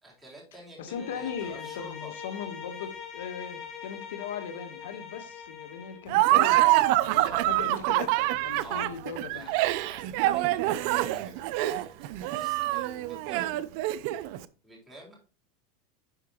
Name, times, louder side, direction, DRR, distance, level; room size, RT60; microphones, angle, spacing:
voice 1, 0.0-2.1 7.2-7.5 8.6-8.9 9.3-9.5 9.8-13.7 14.6-15.2, right 1 dB, 5° right, -4 dB, 3.7 m, -49 dB
voice 2, 0.8-6.6 7.0-9.5, left 7 dB, 85° left, 8 dB, 1.2 m, -38 dB
Bowed string instrument, 0.9-6.1, left 7 dB, 35° left, 3.6 m, -42 dB
Laughter, 6.1-14.4, right 16 dB, 60° right, 0.5 m, -25 dB
11.0 x 4.7 x 3.0 m, 0.36 s
supercardioid pair, 130°, 0 cm